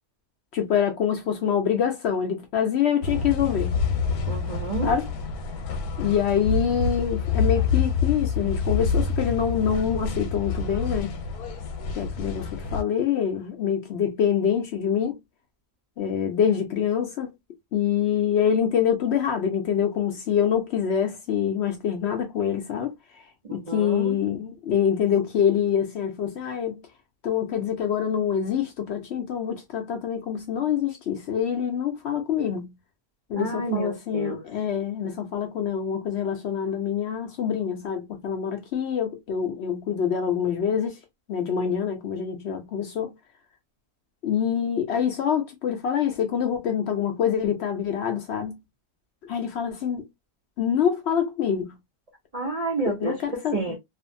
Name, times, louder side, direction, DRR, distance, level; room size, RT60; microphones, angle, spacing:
voice 1, 0.5-3.7 4.8-5.1 6.0-11.1 12.0-15.2 16.0-17.3 17.7-23.2 23.5-26.8 27.2-32.7 33.3-41.0 41.3-43.1 44.2-48.6 49.3-50.1 50.6-51.7 52.9-53.8, left 8 dB, 70° left, 0.6 m, -25 dB
sound 1, 3.0-12.8, left 5 dB, 85° left, 1.1 m, -27 dB
voice 2, 4.3-4.9 23.4-24.2 33.3-34.4 52.3-53.8, right 3 dB, 55° right, 0.4 m, -30 dB
2.5 x 2.4 x 2.5 m
omnidirectional pair, 1.6 m